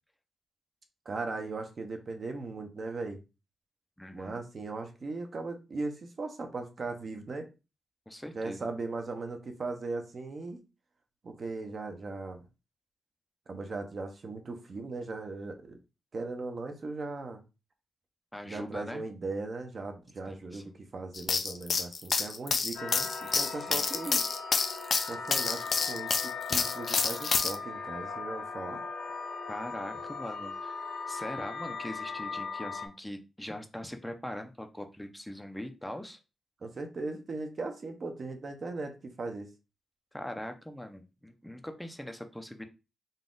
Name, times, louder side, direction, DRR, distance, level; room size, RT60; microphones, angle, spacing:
voice 1, 1.0-3.2 4.1-7.5 8.3-10.6 11.2-12.4 13.5-15.8 16.1-17.4 18.4-24.2 25.1-28.8 36.6-39.5, right 3 dB, 45° right, 5 dB, 0.8 m, -38 dB
voice 2, 4.0-4.5 8.1-8.7 18.3-19.0 20.3-20.8 23.6-23.8 29.5-30.8 31.1-36.2 40.1-42.6, left 1 dB, 5° left, 6 dB, 0.6 m, -41 dB
sound 1, 21.1-27.6, left 5 dB, 50° left, 0.5 m, -28 dB
sound 2, 22.7-32.9, left 4 dB, 80° left, 1.2 m, -39 dB
4.0 x 2.4 x 3.8 m, 0.29 s
cardioid pair, 115°, 0 cm